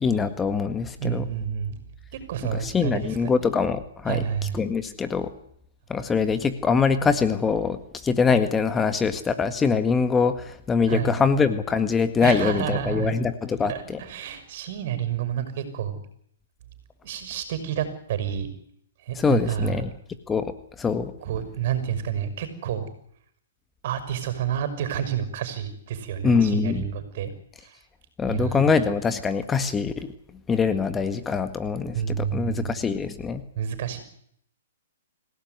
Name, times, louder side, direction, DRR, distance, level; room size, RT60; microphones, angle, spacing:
voice 1, 0.0-1.3 2.5-4.2 4.5-5.3 5.9-14.0 19.2-19.9 20.3-21.1 26.2-26.9 28.2-30.1 30.5-33.4, left 5 dB, 15° left, 10 dB, 1.7 m, -23 dB
voice 2, 1.0-1.7 2.1-3.3 4.1-4.6 10.9-11.1 12.2-13.1 13.6-16.0 17.0-18.5 19.0-19.8 21.2-22.9 23.8-27.3 27.6-27.8 28.3-28.7 31.9-32.7 33.6-34.0, right 9 dB, 50° right, 11 dB, 6.2 m, -29 dB
26.5 x 17.5 x 9.6 m, 0.71 s
hypercardioid pair, 135°, 0 cm